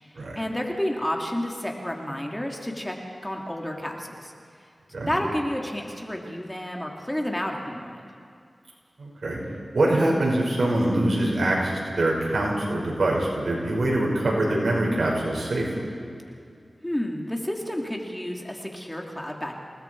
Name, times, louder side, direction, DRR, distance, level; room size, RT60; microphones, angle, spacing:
voice 1, 0.3-4.3 5.1-8.1 16.8-19.5, left 1 dB, 15° left, 1 dB, 3.0 m, -30 dB
voice 2, 9.0-9.4 9.7-15.9, right 1 dB, 75° right, -3 dB, 6.1 m, -24 dB
29.0 x 19.0 x 4.9 m, 2.3 s
cardioid pair, 50°, 0 cm